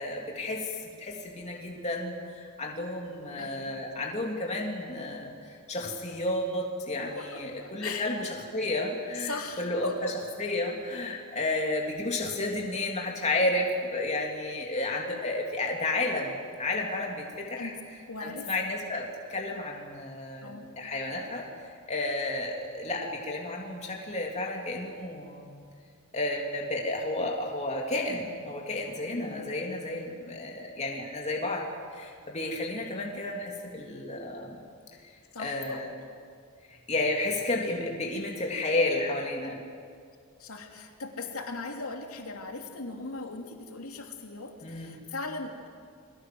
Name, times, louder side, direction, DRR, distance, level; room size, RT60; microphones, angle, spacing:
voice 1, 0.0-10.1 10.4-17.7 18.2-21.5 21.9-25.6 26.1-34.6 35.0-35.1 35.4-35.9 36.7-39.6 44.6-45.0, left 2 dB, 30° left, -1 dB, 3.3 m, -32 dB
voice 2, 3.4-3.9 7.1-8.1 9.1-10.1 17.6-17.8 18.1-18.5 20.4-20.7 29.1-29.4 35.3-36.1 40.4-45.7, left 3 dB, 85° left, 3 dB, 3.0 m, -39 dB
29.5 x 23.0 x 7.9 m, 2.2 s
head